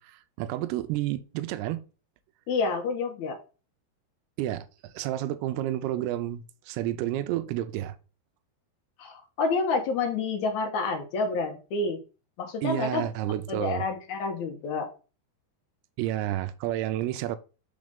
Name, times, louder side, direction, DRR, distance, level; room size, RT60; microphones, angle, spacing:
voice 1, 0.0-1.8 4.4-8.0 12.6-13.8 16.0-17.4, right 13 dB, 80° right, 2.5 m, -30 dB
voice 2, 2.5-3.4 9.0-12.0 12.4-13.1 13.5-14.9, left 4 dB, 80° left, 1.7 m, -29 dB
6.4 x 3.9 x 5.2 m
omnidirectional pair, 5.0 m